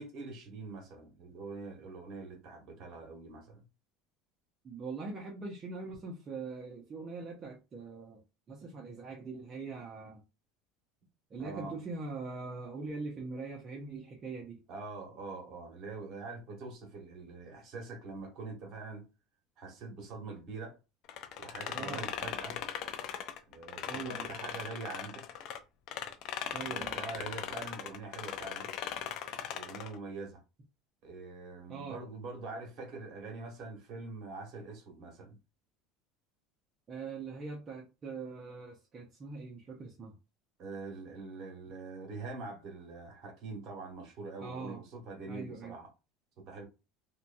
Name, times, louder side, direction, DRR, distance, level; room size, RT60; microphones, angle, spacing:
voice 1, 0.0-3.6 11.4-11.8 14.7-19.1 19.6-20.8 21.4-22.6 23.5-25.5 26.6-28.7 29.5-30.4 31.0-35.4 40.6-45.9 46.4-46.6, right 3 dB, 55° right, 1.3 m, -44 dB
voice 2, 4.6-8.2 8.5-10.2 11.3-14.6 21.7-22.1 23.9-24.3 26.5-27.0 31.7-32.0 36.9-40.1 44.4-44.8 45.3-45.7, right 4 dB, 30° right, 0.7 m, -42 dB
sound 1, 21.1-25.6 25.9-30.0, left 9 dB, 55° left, 0.4 m, -39 dB
2.8 x 2.3 x 2.6 m
supercardioid pair, 125°, 0 cm